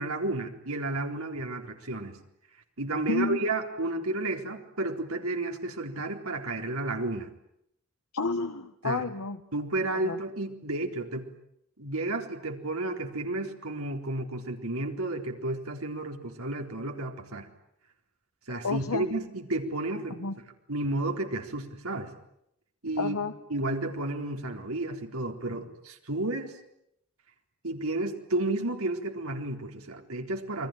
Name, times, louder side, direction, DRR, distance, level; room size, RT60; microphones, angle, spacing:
voice 1, 0.0-2.2 2.8-7.3 8.8-9.0 9.5-11.3 11.8-17.5 18.5-20.2 20.7-22.1 22.8-23.2 23.5-26.6 27.6-30.7, right 2 dB, 85° right, 3 dB, 4.1 m, -32 dB
voice 2, 3.1-3.4 8.1-9.4 10.0-10.2 18.6-19.1 20.1-20.3 23.0-23.3, left 3 dB, 85° left, 7 dB, 1.5 m, -30 dB
29.0 x 22.5 x 9.2 m, 0.77 s
head